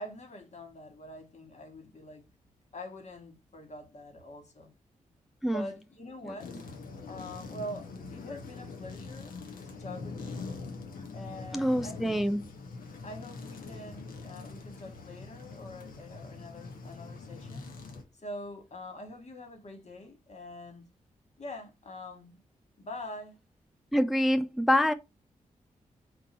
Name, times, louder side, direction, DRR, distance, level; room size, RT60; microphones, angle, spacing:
voice 1, 0.0-2.2 2.7-4.7 5.5-6.6 7.0-9.4 9.6-10.5 11.1-12.2 13.0-17.7 18.1-20.9 21.4-22.3 22.8-23.4, left 1 dB, 50° left, 1.5 m, -44 dB
sound 1, 6.4-18.0, left 4 dB, 80° left, 0.9 m, -43 dB
voice 2, 11.5-12.4 23.9-24.9, equal, ahead, 0.4 m, -26 dB
4.4 x 2.6 x 4.2 m
supercardioid pair, 45°, 14 cm